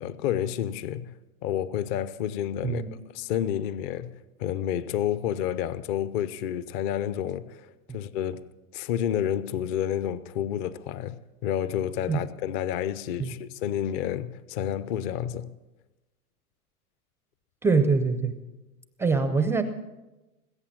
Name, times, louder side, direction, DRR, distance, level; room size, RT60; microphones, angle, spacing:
voice 1, 0.0-1.1 1.4-2.8 3.1-4.1 4.4-8.4 8.7-11.2 11.4-15.5, left 10 dB, 35° left, 0.6 m, -30 dB
voice 2, 17.6-18.3 19.0-19.6, right 4 dB, 5° right, 0.5 m, -23 dB
20.5 x 8.6 x 7.3 m
hypercardioid pair, 125°, 44 cm